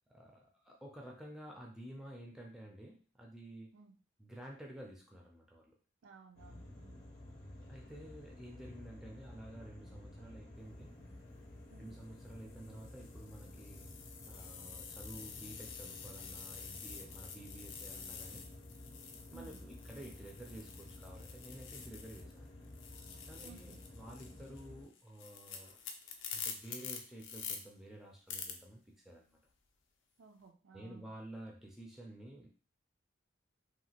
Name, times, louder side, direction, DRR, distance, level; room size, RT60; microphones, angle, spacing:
voice 1, 0.1-3.8 4.2-5.7 7.7-10.9 11.8-13.9 14.3-18.5 19.3-22.5 23.2-25.7 26.3-29.4 30.7-32.5, right 1 dB, 5° right, -1 dB, 0.4 m, -51 dB
voice 2, 6.0-7.1 11.7-12.0 19.3-19.6 23.4-23.8 30.2-31.1, right 5 dB, 85° right, 4 dB, 0.5 m, -58 dB
sound 1, 6.4-24.9, left 1 dB, 35° left, 0.7 m, -53 dB
sound 2, 11.2-11.5 12.2-22.4 22.6-27.6 28.3-28.5, left 6 dB, 75° left, 0.5 m, -48 dB
2.8 x 2.4 x 2.8 m, 0.40 s
head